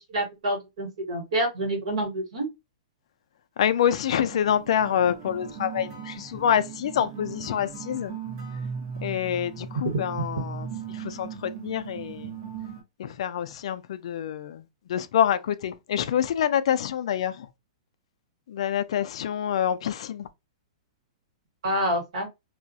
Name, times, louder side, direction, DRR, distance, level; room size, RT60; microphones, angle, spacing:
voice 1, 0.1-2.5 21.6-22.3, right 1 dB, 70° right, 1.3 m, -27 dB
voice 2, 3.6-8.1 9.0-10.7 11.0-12.3 13.0-14.6 14.9-17.3 18.5-20.3, left 9 dB, 65° left, 0.3 m, -26 dB
sound 1, 4.3-12.8, right 6 dB, 35° right, 0.9 m, -38 dB
2.3 x 2.1 x 2.6 m
hypercardioid pair, 160°, 3 cm